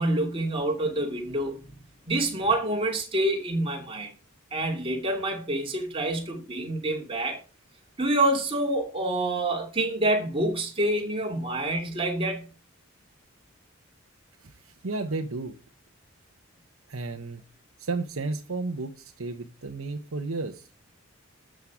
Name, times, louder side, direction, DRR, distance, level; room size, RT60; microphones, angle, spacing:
voice 1, 0.0-1.6 2.1-4.1 4.5-7.4 8.0-12.5, right 1 dB, 25° right, 2.5 m, -27 dB
voice 2, 14.4-15.5 16.9-17.4 17.8-20.7, right 3 dB, 90° right, 1.0 m, -33 dB
13.0 x 7.6 x 4.9 m
head